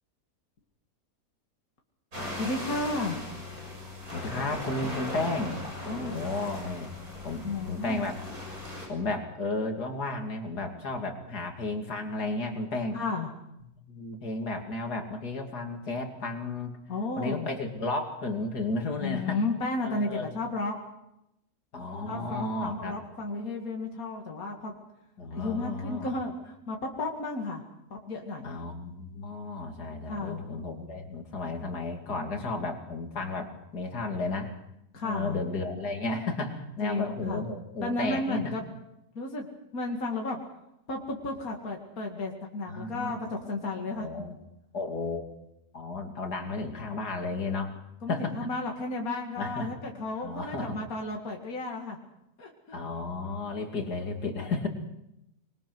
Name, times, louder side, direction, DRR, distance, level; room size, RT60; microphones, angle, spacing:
sound 1, 2.1-8.9, left 1 dB, 60° right, 7.1 m, -38 dB
voice 1, 2.4-3.2 5.8-6.3 7.4-8.0 12.9-13.3 16.9-17.5 19.0-20.8 22.1-24.8 25.3-27.6 27.9-28.5 30.1-30.4 34.9-35.4 36.8-37.4 37.8-38.7 39.1-39.5 39.7-40.4 40.9-44.1 48.0-52.0 52.4-52.8, left 2 dB, 60° left, 0 dB, 2.7 m, -33 dB
voice 2, 4.1-6.9 7.2-8.2 8.9-13.0 13.9-16.8 17.2-19.4 19.8-20.3 21.7-23.0 25.2-26.1 28.4-34.6 35.0-38.5 42.7-43.2 43.9-44.4 44.7-45.2 45.7-48.5 49.4-49.7 50.2-50.8 52.7-54.7, left 3 dB, 75° left, 4 dB, 3.2 m, -33 dB
26.0 x 21.5 x 6.2 m, 0.84 s
omnidirectional pair, 1.7 m